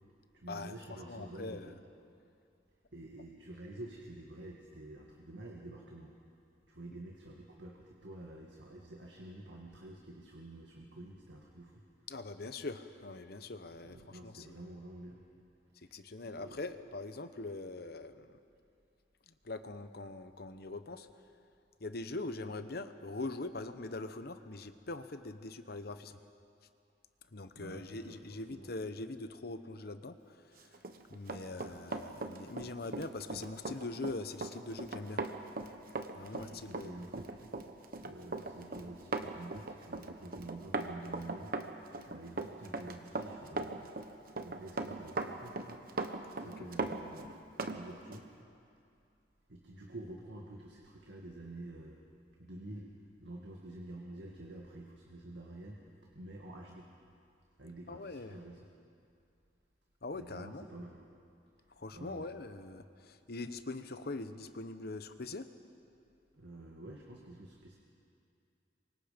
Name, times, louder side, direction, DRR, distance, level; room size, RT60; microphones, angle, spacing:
voice 1, 0.3-1.8 2.9-6.1 6.7-11.8 13.8-15.2 15.8-16.0 16.4-16.8 27.6-28.7 36.2-37.4 38.0-41.5 42.0-44.0 44.3-48.3 49.5-52.0 52.4-52.9 53.2-56.9 57.6-58.7 60.1-61.0 61.9-62.3 66.3-67.8, right 1 dB, 90° right, -1 dB, 2.0 m, -49 dB
voice 2, 1.1-1.7 12.1-14.5 15.9-18.4 19.3-21.1 21.8-26.2 27.3-30.7 31.1-35.2 36.1-37.0 46.4-46.7 57.9-58.3 60.0-60.6 61.8-65.5, left 2 dB, 60° left, 10 dB, 1.0 m, -42 dB
Run, 30.7-47.8 48.1-48.3, right 3 dB, 55° right, 1.2 m, -39 dB
27.5 x 24.5 x 5.2 m, 2.5 s
head